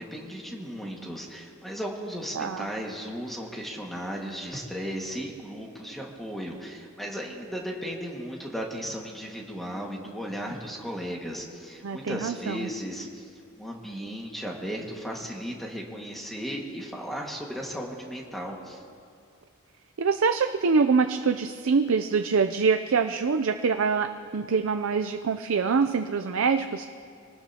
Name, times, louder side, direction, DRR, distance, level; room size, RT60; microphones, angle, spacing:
voice 1, 0.0-18.8, equal, ahead, -1 dB, 1.8 m, -36 dB
voice 2, 2.4-2.7 11.8-12.7 20.0-26.9, right 5 dB, 75° right, 8 dB, 0.5 m, -25 dB
25.0 x 19.5 x 2.9 m, 2.4 s
head